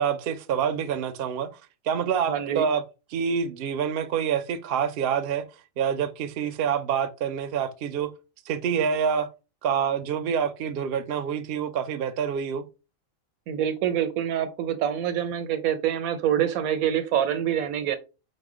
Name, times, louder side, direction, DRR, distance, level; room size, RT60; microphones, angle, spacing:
voice 1, 0.0-1.5 1.9-2.8 3.1-5.4 5.8-8.1 8.5-9.3 9.6-12.6, right 7 dB, 60° right, 0.6 m, -26 dB
voice 2, 2.3-2.7 13.5-18.0, right 10 dB, 80° right, 1.1 m, -26 dB
4.9 x 2.2 x 4.8 m
omnidirectional pair, 1.5 m